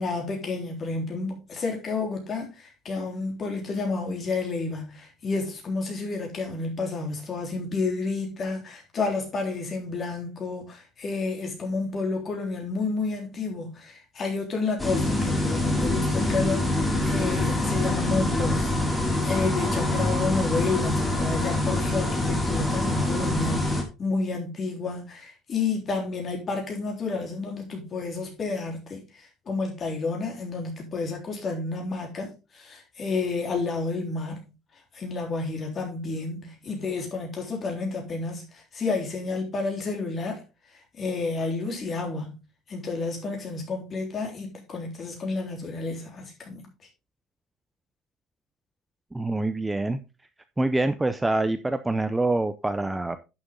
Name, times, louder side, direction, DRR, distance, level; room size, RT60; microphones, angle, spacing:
voice 1, 0.0-18.7 19.2-34.4 34.9-40.4 40.9-42.4 42.7-46.7, left 3 dB, 30° left, 3.6 m, -30 dB
sound 1, 14.8-23.8, left 2 dB, 5° left, 2.3 m, -25 dB
voice 2, 49.1-50.0 50.6-53.2, right 2 dB, 10° right, 0.5 m, -25 dB
11.0 x 7.0 x 3.7 m
cardioid pair, 155°, 0 cm